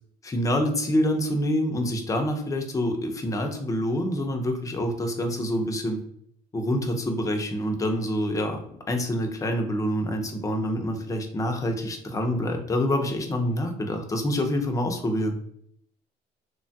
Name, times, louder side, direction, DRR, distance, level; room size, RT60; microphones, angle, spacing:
voice 1, 0.2-6.0 6.5-15.4, equal, 20° left, 4 dB, 0.5 m, -26 dB
3.1 x 2.2 x 2.6 m, 0.68 s
cardioid pair, 110°, 17 cm